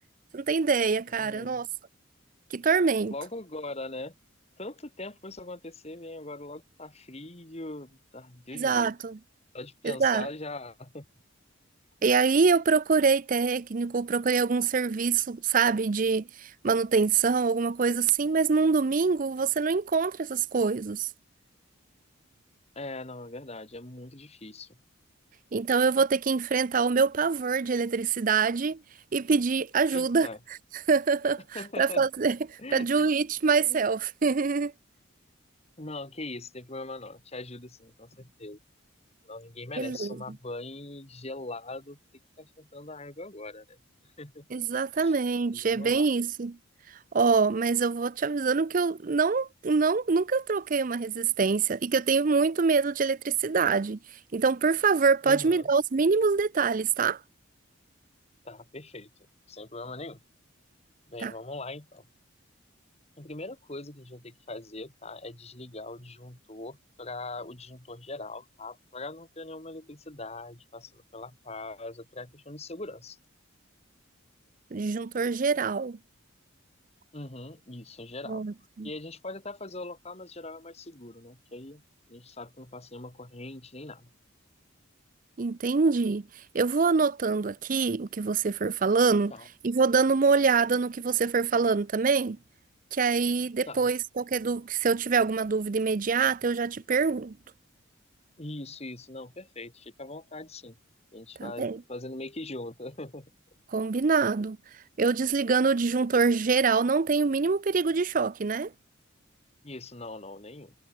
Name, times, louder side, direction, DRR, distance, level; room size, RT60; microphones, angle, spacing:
voice 1, 0.3-1.7 2.5-3.1 8.5-9.2 9.8-10.3 12.0-21.1 25.5-28.8 29.1-30.3 30.9-34.7 39.8-40.1 44.5-46.6 46.9-54.0 54.3-57.2 61.2-61.3 74.7-76.0 78.3-78.9 85.4-86.2 86.5-89.3 89.6-92.4 92.9-97.3 101.4-101.8 103.7-104.6 105.0-108.7, right 5 dB, 40° right, 0.5 m, -25 dB
voice 2, 1.1-1.6 3.1-4.1 4.6-8.9 9.5-11.1 22.8-24.8 29.9-30.4 31.5-32.1 32.6-32.9 33.6-33.8 35.8-38.6 39.2-42.0 42.4-44.5 45.0-45.2 45.5-46.1 55.2-55.7 58.4-59.1 59.5-60.2 61.1-62.0 63.2-73.2 77.1-78.5 78.8-84.1 89.3-89.5 93.7-93.9 98.4-100.8 101.1-103.3 109.6-110.7, left 2 dB, 30° left, 2.1 m, -41 dB
head